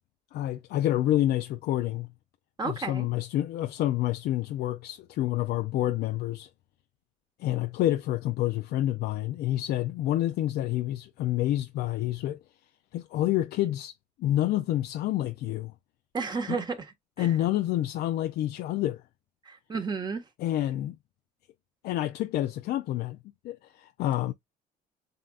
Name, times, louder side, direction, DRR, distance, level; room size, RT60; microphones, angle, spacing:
voice 1, 0.3-2.1 2.6-6.5 7.4-12.4 12.9-13.9 14.2-15.7 16.5-16.6 17.2-19.0 20.4-21.0 21.8-23.2 23.4-24.3, left 13 dB, 70° left, 0.5 m, -28 dB
voice 2, 2.6-3.1 16.1-17.3 19.5-20.2, right 4 dB, 25° right, 1.5 m, -32 dB
7.6 x 2.7 x 2.4 m
cardioid pair, 110°, 17 cm